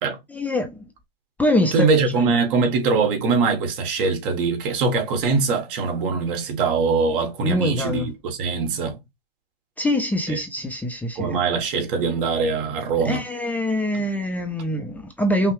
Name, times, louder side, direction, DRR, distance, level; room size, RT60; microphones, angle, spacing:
voice 1, 0.3-0.9 1.4-2.3 7.4-8.1 9.8-11.4 13.0-15.5, left 1 dB, 5° left, 0.4 m, -24 dB
voice 2, 1.7-9.0 11.2-13.2, right 4 dB, 60° right, 1.6 m, -22 dB
5.5 x 2.0 x 3.2 m
supercardioid pair, 135°, 30 cm